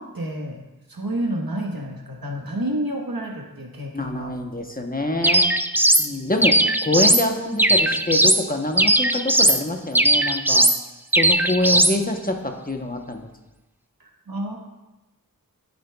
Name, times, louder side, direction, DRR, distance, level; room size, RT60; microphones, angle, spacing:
voice 1, 0.0-4.4 14.0-14.6, right 1 dB, 90° right, 1 dB, 1.3 m, -30 dB
voice 2, 3.9-5.5 6.0-10.7 11.2-13.3, left 1 dB, 25° left, 3 dB, 0.9 m, -25 dB
sound 1, 5.2-6.1 6.4-7.2 7.6-8.4 8.8-9.6 9.9-10.8 11.1-12.0, right 1 dB, 5° right, 0.3 m, -18 dB
13.5 x 6.8 x 2.3 m, 1.1 s
wide cardioid pair, 40°, 35 cm